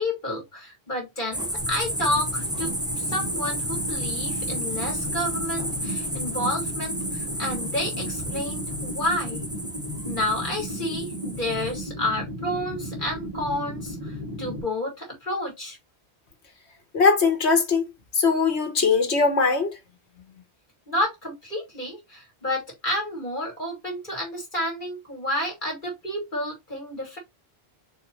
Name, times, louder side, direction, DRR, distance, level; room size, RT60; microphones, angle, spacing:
voice 1, 0.0-9.4 10.0-15.8 20.9-27.2, left 1 dB, 50° left, 2.7 m, -30 dB
sound 1, 1.3-11.8, right 1 dB, 5° right, 0.5 m, -32 dB
sound 2, 1.6-14.6, equal, 30° right, 2.7 m, -35 dB
voice 2, 16.9-17.8 18.1-19.7, left 4 dB, 85° left, 1.5 m, -20 dB
4.5 x 3.7 x 3.1 m
omnidirectional pair, 1.1 m